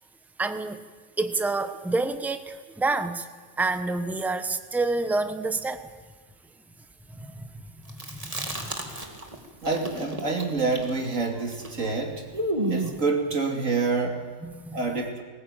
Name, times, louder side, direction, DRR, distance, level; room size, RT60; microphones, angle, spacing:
voice 1, 0.4-0.8 1.2-3.3 3.6-5.9 7.1-7.6 7.9-8.7 14.4-14.8, right 3 dB, ahead, 9 dB, 0.9 m, -28 dB
Chewing mastication, 7.9-9.4 9.6-13.0, right 1 dB, 25° right, 2.4 m, -32 dB
voice 2, 9.6-12.2 12.7-14.3 14.7-15.2, right 4 dB, 65° right, 2 dB, 3.2 m, -27 dB
19.5 x 19.5 x 9.0 m, 1.5 s
omnidirectional pair, 1.4 m